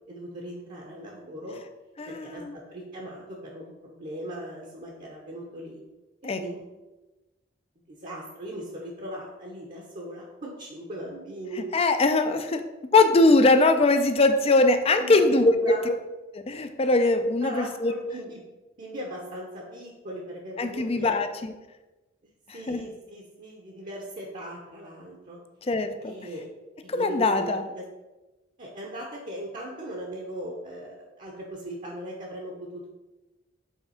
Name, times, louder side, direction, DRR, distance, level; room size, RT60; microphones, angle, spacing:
voice 1, 0.1-1.6 2.1-5.8 6.4-6.6 7.9-11.7 15.0-16.0 17.4-18.4 18.8-21.2 22.5-25.4 26.0-26.5 26.8-27.8 28.6-32.9, right 1 dB, 45° right, -1 dB, 0.9 m, -38 dB
voice 2, 2.0-2.5 6.2-6.4 11.7-12.6 12.9-15.5 16.5-17.9 20.6-21.5 22.7-22.9 25.7-26.1 26.9-27.6, left 2 dB, 30° left, 8 dB, 0.5 m, -21 dB
5.6 x 3.5 x 5.6 m, 1.1 s
head